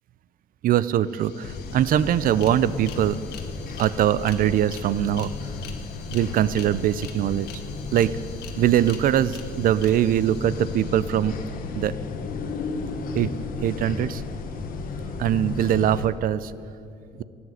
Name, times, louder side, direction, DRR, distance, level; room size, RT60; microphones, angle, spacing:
voice 1, 0.6-3.2 3.8-5.3 6.1-7.5 7.9-8.2 8.6-11.4 11.7-11.9 13.1-13.3 13.6-14.2 15.2-16.5, right 11 dB, 55° right, 17 dB, 0.5 m, -22 dB
sound 1, 0.7-0.8 1.0-11.8, left 7 dB, 75° left, 1.4 m, -46 dB
sound 2, 1.4-16.1, left 4 dB, 55° left, 1.2 m, -34 dB
13.5 x 8.6 x 7.9 m, 2.7 s
cardioid pair, 110°, 17 cm